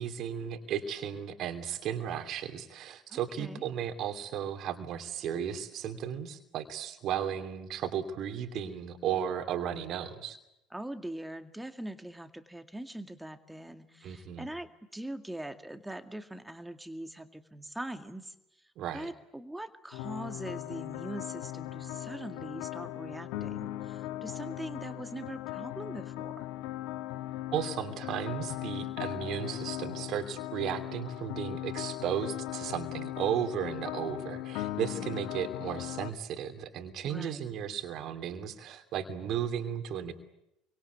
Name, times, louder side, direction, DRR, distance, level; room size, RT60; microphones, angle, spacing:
voice 1, 0.0-10.4 14.0-14.5 18.8-19.1 27.5-40.1, right 9 dB, 50° right, 7 dB, 2.9 m, -35 dB
voice 2, 3.1-3.7 10.7-26.5 34.9-35.3 37.0-37.5, right 1 dB, 5° right, 7 dB, 2.2 m, -42 dB
sound 1, 19.9-36.1, left 14 dB, 65° left, 1.1 m, -38 dB
28.0 x 24.5 x 8.3 m, 0.86 s
figure-of-eight pair, 65°, 0 cm